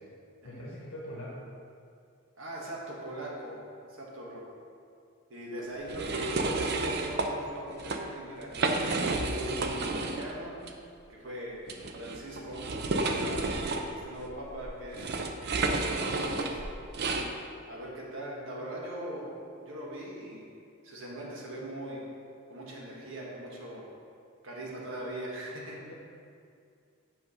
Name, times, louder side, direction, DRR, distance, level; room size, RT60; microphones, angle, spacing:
voice 1, 0.4-1.5 25.8-25.9, equal, 85° left, -5 dB, 1.1 m, -42 dB
voice 2, 2.4-4.4 5.3-10.5 11.1-11.6 12.0-12.7 12.9-13.5 13.9-15.1 15.5-16.6 17.7-19.3 19.6-20.5 20.8-22.0 22.5-23.9 24.4-25.8, right 1 dB, 65° right, -4 dB, 1.5 m, -40 dB
sound 1, 5.9-7.3 7.7-8.0 8.4-10.3 10.6-10.7 11.7-17.3, right 3 dB, 50° right, 0.5 m, -31 dB
6.1 x 5.1 x 5.4 m, 2.4 s
head